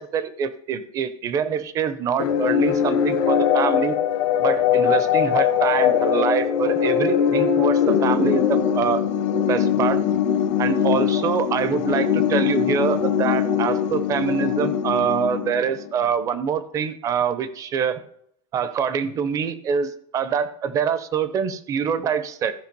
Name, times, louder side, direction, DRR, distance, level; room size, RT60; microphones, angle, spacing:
voice 1, 0.0-4.0 4.4-9.0 9.4-10.0 10.6-18.0 18.5-22.5, right 7 dB, 20° right, 14 dB, 0.5 m, -25 dB
sound 1, 2.2-15.9, left 8 dB, 60° left, 1.0 m, -21 dB
14.5 x 5.0 x 5.3 m, 0.69 s
supercardioid pair, 180°, 17 cm